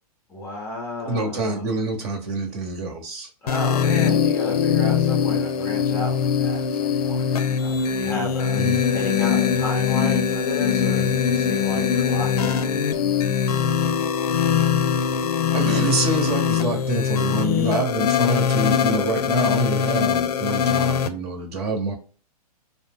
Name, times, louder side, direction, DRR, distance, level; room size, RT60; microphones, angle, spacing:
voice 1, 0.3-1.7 3.4-13.0, left 2 dB, 10° left, -2 dB, 0.5 m, -33 dB
voice 2, 1.0-3.3 8.5-8.8 15.5-21.9, right 2 dB, 40° right, 2 dB, 0.9 m, -26 dB
sound 1, 3.5-21.1, left 7 dB, 75° left, 0.5 m, -22 dB
2.7 x 2.0 x 3.5 m, 0.38 s
hypercardioid pair, 150°, 20 cm